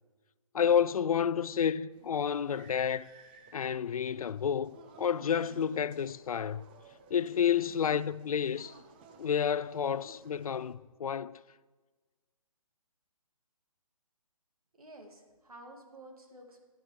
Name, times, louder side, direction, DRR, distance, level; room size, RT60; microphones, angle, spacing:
voice 1, 0.5-3.1 3.5-6.7 7.1-8.7 9.2-11.4, left 8 dB, 80° left, 0.4 m, -30 dB
sound 1, 1.9-10.7, right 5 dB, 15° right, 0.4 m, -56 dB
voice 2, 14.8-16.6, right 1 dB, 90° right, 2.1 m, -51 dB
11.0 x 10.0 x 3.2 m
hypercardioid pair, 150°, 18 cm